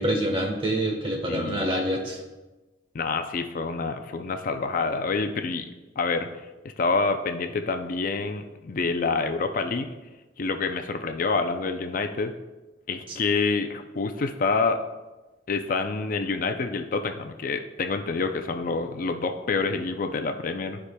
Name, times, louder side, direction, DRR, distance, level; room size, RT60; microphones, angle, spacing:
voice 1, 0.0-2.2, right 1 dB, 30° right, 1 dB, 1.1 m, -26 dB
voice 2, 1.3-1.7 2.9-5.7 6.0-6.3 6.8-9.9 10.4-12.3 12.9-14.8 15.5-20.8, left 4 dB, 50° left, 7 dB, 0.4 m, -27 dB
13.5 x 4.8 x 2.2 m, 1.1 s
head